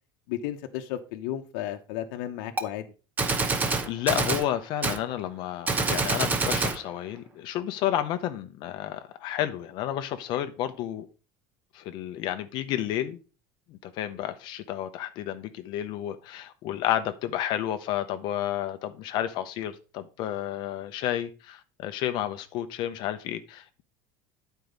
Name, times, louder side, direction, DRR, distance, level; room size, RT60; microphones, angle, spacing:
voice 1, 0.3-2.9, left 12 dB, 75° left, 0.9 m, -33 dB
Gunshot gunfire, 2.6-2.7 3.2-4.5 4.8-5.0 5.7-6.8, right 3 dB, 15° right, 0.7 m, -26 dB
voice 2, 3.5-11.1 11.7-13.2 13.7-23.8, left 12 dB, 45° left, 0.7 m, -31 dB
9.9 x 4.6 x 5.2 m
cardioid pair, 175°, 11 cm